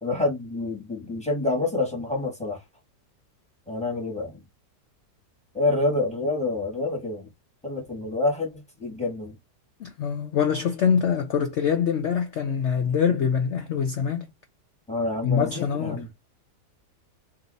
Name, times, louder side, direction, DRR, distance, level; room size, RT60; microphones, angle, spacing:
voice 1, 0.0-2.6 3.7-4.4 5.5-7.3 7.6-9.4 14.9-16.1, left 2 dB, 5° left, 1.3 m, -27 dB
voice 2, 9.8-14.3 15.2-16.0, left 7 dB, 85° left, 0.6 m, -24 dB
2.8 x 2.7 x 3.9 m
omnidirectional pair, 1.8 m